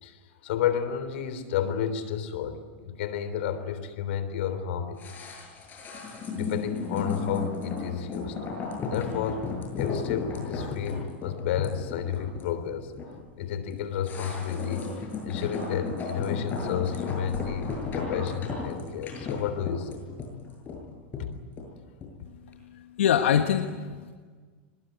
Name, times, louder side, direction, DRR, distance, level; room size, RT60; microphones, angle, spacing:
voice 1, 0.0-5.0 6.3-8.4 8.9-9.5 9.8-12.9 13.4-14.9 15.2-20.0 21.2-21.3, left 8 dB, 70° left, 11 dB, 3.5 m, -31 dB
sound 1, 5.0-22.2 22.5-22.6, left 4 dB, 30° left, 7.9 m, -34 dB
voice 2, 22.3-24.1, left 9 dB, 90° left, 6 dB, 1.4 m, -26 dB
24.5 x 21.0 x 9.4 m, 1.5 s
supercardioid pair, 130°, 6 cm